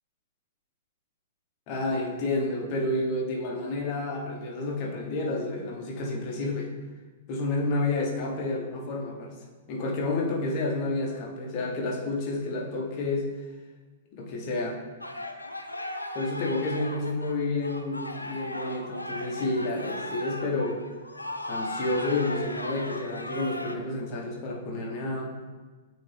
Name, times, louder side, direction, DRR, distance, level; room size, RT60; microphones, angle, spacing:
voice 1, 1.7-6.7 7.3-9.3 9.7-13.2 14.1-14.8 16.1-20.8 21.5-25.3, left 2 dB, 35° left, -2 dB, 1.2 m, -30 dB
sound 1, 15.0-23.7, left 1 dB, 85° left, 0.4 m, -37 dB
8.8 x 3.2 x 3.4 m, 1.4 s
figure-of-eight pair, 110°, 0 cm